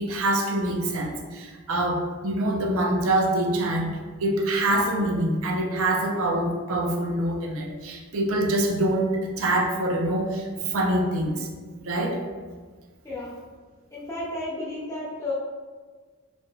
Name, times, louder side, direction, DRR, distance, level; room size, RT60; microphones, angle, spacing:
voice 1, 0.0-3.9 4.2-11.5 11.8-12.2, right 1 dB, 65° right, 1 dB, 0.5 m, -25 dB
voice 2, 13.9-15.3, left 2 dB, 15° left, -8 dB, 1.0 m, -32 dB
4.0 x 3.1 x 2.3 m, 1.4 s
head